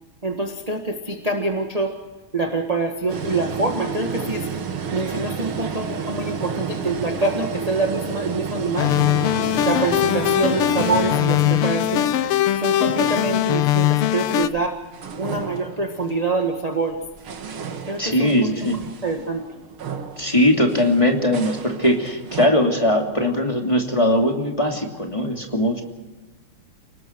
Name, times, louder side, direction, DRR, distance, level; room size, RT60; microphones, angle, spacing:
voice 1, 0.2-2.0 2.3-4.5 4.9-8.9 9.6-12.1 12.6-14.8 15.2-17.0 17.9-19.5, right 3 dB, 20° right, 4 dB, 1.4 m, -25 dB
sound 1, 3.1-14.6 14.9-16.3 16.9-22.5, right 6 dB, 70° right, 2.5 m, -31 dB
sound 2, 8.8-14.5, left 13 dB, 85° left, 1.7 m, -20 dB
voice 2, 18.0-18.8 20.2-25.8, left 1 dB, 15° left, 2 dB, 2.6 m, -20 dB
29.5 x 19.0 x 4.6 m, 1.2 s
omnidirectional pair, 2.4 m